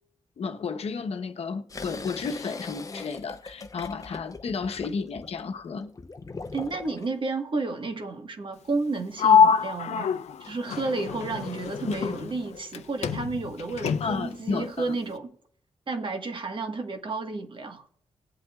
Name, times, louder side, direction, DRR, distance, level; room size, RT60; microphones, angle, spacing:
voice 1, 0.4-5.9 11.8-12.2 14.0-15.0, left 5 dB, 65° left, 1.0 m, -32 dB
sound 1, 1.7-7.1, left 3 dB, 30° left, 0.8 m, -41 dB
voice 2, 6.5-10.1 10.4-15.3 15.9-17.8, right 3 dB, 50° right, 1.4 m, -31 dB
Sliding door, 9.2-12.8 13.0-14.3, left 6 dB, 85° left, 0.5 m, -24 dB
19.5 x 7.9 x 2.4 m
cardioid pair, 70°, 11 cm